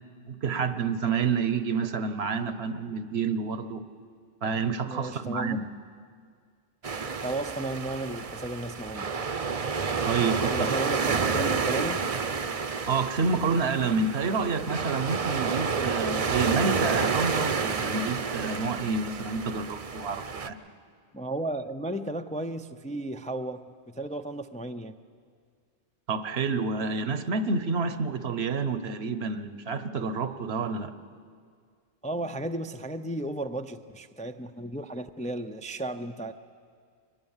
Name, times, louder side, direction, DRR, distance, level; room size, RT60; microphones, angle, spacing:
voice 1, 0.3-3.8 4.4-5.6 10.0-10.7 12.9-20.6 26.1-30.9, right 4 dB, 75° right, 11 dB, 1.2 m, -29 dB
voice 2, 4.9-5.6 7.2-9.2 10.5-12.1 21.1-24.9 32.0-36.3, right 1 dB, 10° left, 8 dB, 0.4 m, -34 dB
sound 1, 6.8-20.5, right 5 dB, 40° right, 0.7 m, -30 dB
23.5 x 20.0 x 7.3 m, 2.1 s
omnidirectional pair, 1.1 m